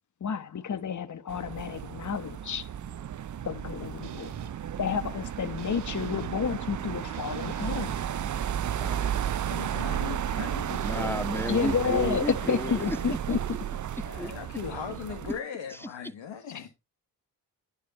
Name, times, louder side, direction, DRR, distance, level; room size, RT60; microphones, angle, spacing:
voice 1, 0.2-2.7 3.4-4.3 4.8-8.0 11.5-13.4 16.5-16.6, left 6 dB, 40° left, 1.0 m, -30 dB
sound 1, 1.3-15.4, right 10 dB, 45° right, 0.5 m, -33 dB
sound 2, 4.0-4.5 5.6-6.3 7.1-8.1 9.1-9.9 10.7-11.1, right 7 dB, 65° right, 1.5 m, -45 dB
voice 2, 8.8-9.2 10.7-13.4 14.2-14.3 15.7-15.9, equal, 5° left, 0.6 m, -33 dB
voice 3, 9.4-11.7 14.0-16.7, left 8 dB, 80° left, 1.5 m, -39 dB
10.5 x 4.8 x 4.1 m
supercardioid pair, 50°, 44 cm